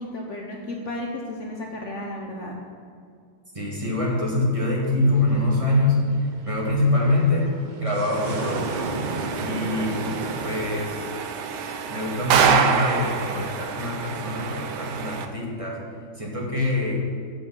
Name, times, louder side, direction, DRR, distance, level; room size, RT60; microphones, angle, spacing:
voice 1, 0.0-2.6, left 1 dB, 55° left, 0 dB, 1.0 m, -33 dB
voice 2, 3.5-7.5 7.8-8.9 9.4-10.1 10.4-11.1 11.9-15.8 16.1-17.1, left 2 dB, 20° right, -4 dB, 1.5 m, -24 dB
sound 1, 5.0-10.8, right 3 dB, 55° right, 0.5 m, -34 dB
sound 2, 8.1-15.3, right 6 dB, 80° right, 1.3 m, -26 dB
8.2 x 7.1 x 5.5 m, 2.3 s
omnidirectional pair, 1.8 m